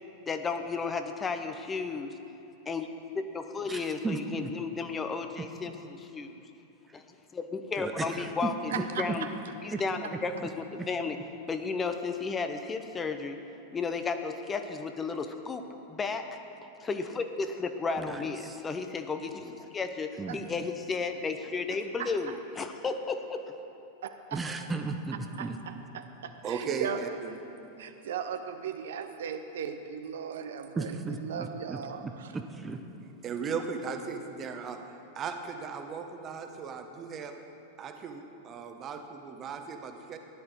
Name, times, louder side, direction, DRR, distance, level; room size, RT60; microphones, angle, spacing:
voice 1, 0.3-2.1 2.7-2.9 3.1-6.4 6.9-7.0 7.3-9.2 9.6-11.2 11.5-13.4 13.7-15.6 15.9-16.4 16.8-23.4, left 4 dB, 20° left, 7 dB, 0.7 m, -33 dB
voice 2, 3.6-4.5 5.4-5.5 7.8-9.1 9.7-9.8 10.1-10.2 10.8-10.9 18.0-18.6 20.2-20.5 24.3-25.6 30.7-32.9, right 3 dB, 15° right, 6 dB, 0.8 m, -36 dB
voice 3, 8.7-9.3 20.2-20.4 22.0-22.3 24.0-24.4 25.4-27.0 27.8-32.3, right 8 dB, 60° right, 7 dB, 0.7 m, -38 dB
voice 4, 26.4-27.4 33.2-34.8 35.1-37.3 37.8-40.2, right 5 dB, 30° right, 6 dB, 1.1 m, -37 dB
15.0 x 10.5 x 4.7 m, 2.9 s
figure-of-eight pair, 90°, 0 cm